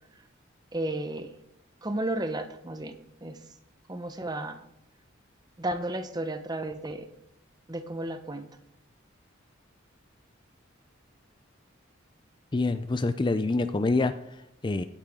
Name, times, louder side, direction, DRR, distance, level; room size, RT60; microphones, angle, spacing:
voice 1, 0.7-1.3 1.8-2.9 3.2-3.4 3.9-4.6 5.6-7.1 7.7-8.5, right 1 dB, 20° right, 8 dB, 0.9 m, -33 dB
voice 2, 12.5-14.8, left 3 dB, 25° left, 11 dB, 0.4 m, -27 dB
16.5 x 9.0 x 3.7 m, 0.80 s
head